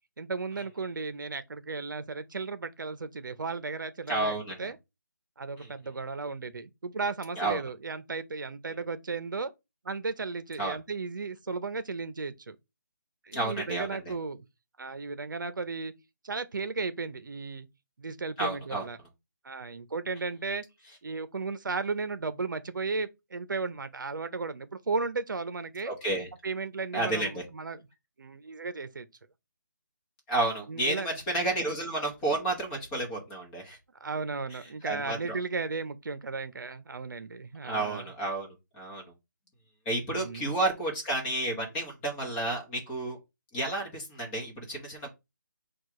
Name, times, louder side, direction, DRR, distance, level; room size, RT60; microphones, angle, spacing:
voice 1, 0.2-4.8 5.4-9.5 9.8-12.6 13.3-14.4 14.8-15.9 16.2-17.7 18.0-19.0 19.4-20.6 21.0-25.9 26.4-27.8 28.2-29.1 30.7-31.2 34.0-38.1 40.1-40.5, right 4 dB, 75° right, 0.6 m, -35 dB
voice 2, 4.1-4.7 5.6-5.7 7.4-7.6 10.6-10.8 13.3-14.1 18.4-18.8 25.8-26.3 26.9-27.4 30.3-33.8 34.5-34.6 34.8-35.4 37.6-39.1 39.8-43.2 43.5-45.1, right 2 dB, 10° left, 0.9 m, -31 dB
4.6 x 2.4 x 4.7 m
hypercardioid pair, 170°, 11 cm